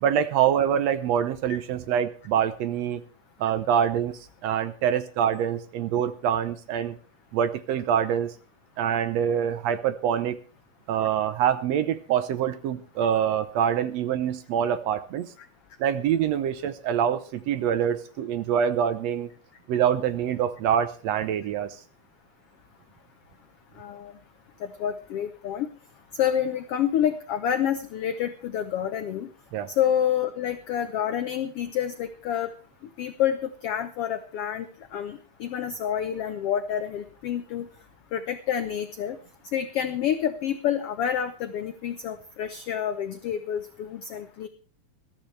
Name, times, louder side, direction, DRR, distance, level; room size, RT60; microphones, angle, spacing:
voice 1, 0.0-3.0 3.4-7.0 7.3-8.3 8.8-10.4 10.9-15.3 15.8-19.3 19.7-21.8 29.5-29.7, right 9 dB, 70° right, 12 dB, 1.8 m, -25 dB
voice 2, 23.8-24.1 24.6-25.7 26.1-29.3 29.7-32.5 33.0-34.7 34.9-37.7 38.1-39.2 39.5-44.5, left 9 dB, 70° left, 9 dB, 1.4 m, -28 dB
21.0 x 13.5 x 3.3 m, 0.37 s
omnidirectional pair, 3.6 m